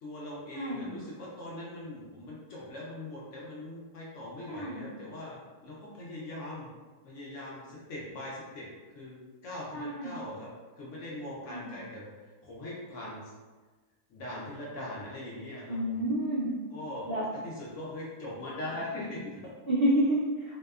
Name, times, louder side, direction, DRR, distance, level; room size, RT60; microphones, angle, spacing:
voice 1, 0.0-6.7 7.0-8.7 8.9-9.2 9.4-10.5 10.8-13.3 14.1-16.0 16.7-17.1 17.4-19.5, left 1 dB, 65° left, -5 dB, 0.8 m, -41 dB
voice 2, 0.5-0.9 4.5-4.9 9.7-10.2 11.5-11.7 15.7-16.5 17.1-17.3 19.7-20.6, right 1 dB, 75° right, -8 dB, 0.5 m, -29 dB
2.7 x 2.2 x 2.2 m, 1.3 s
omnidirectional pair, 1.6 m